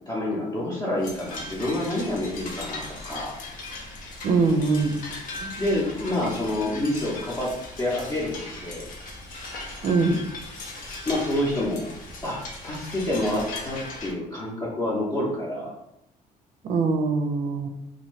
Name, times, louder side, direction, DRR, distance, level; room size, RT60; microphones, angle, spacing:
voice 1, 0.1-3.3 5.6-7.5 7.8-8.9 10.8-11.8 12.2-15.7, left 1 dB, 30° left, -7 dB, 0.7 m, -28 dB
sound 1, 1.0-14.1, left 2 dB, 70° left, 0.7 m, -38 dB
voice 2, 4.2-4.9 5.4-5.5 9.8-10.2 16.6-17.7, right 4 dB, 55° right, 6 dB, 0.4 m, -22 dB
2.7 x 2.5 x 3.1 m, 0.82 s
cardioid pair, 125°, 15 cm